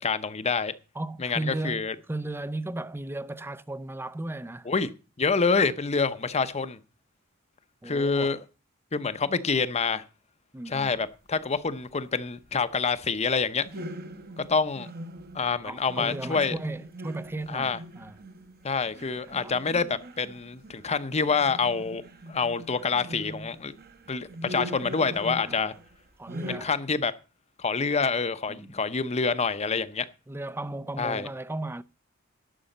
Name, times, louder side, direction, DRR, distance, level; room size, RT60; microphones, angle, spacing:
voice 1, 0.0-0.7 1.2-1.9 4.7-4.9 5.2-6.8 7.8-8.4 8.9-10.0 10.7-13.7 14.4-14.9 15.3-16.5 17.5-17.8 18.6-22.0 22.3-23.7 24.1-25.7 26.5-27.1 27.6-30.1 31.0-31.3, left 4 dB, 30° left, 0.8 m, -27 dB
voice 2, 0.9-4.7 7.8-8.3 10.5-11.0 15.6-18.2 19.3-19.6 25.4-25.7 26.2-26.7 28.5-28.8 30.3-31.8, right 2 dB, 10° right, 0.5 m, -35 dB
sound 1, 13.6-26.0 26.3-26.6, right 1 dB, 45° right, 1.0 m, -41 dB
11.5 x 6.3 x 7.8 m
head